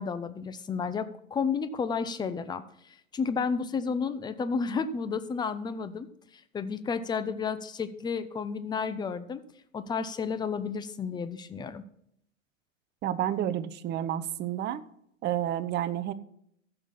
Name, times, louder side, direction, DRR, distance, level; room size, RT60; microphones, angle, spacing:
voice 1, 0.0-6.1 6.3-9.4 9.7-11.8, left 5 dB, 10° left, 12 dB, 0.6 m, -32 dB
voice 2, 13.0-14.8 15.2-16.1, right 11 dB, 25° right, 13 dB, 0.7 m, -30 dB
14.5 x 6.6 x 4.2 m, 0.71 s
hypercardioid pair, 100°, 41 cm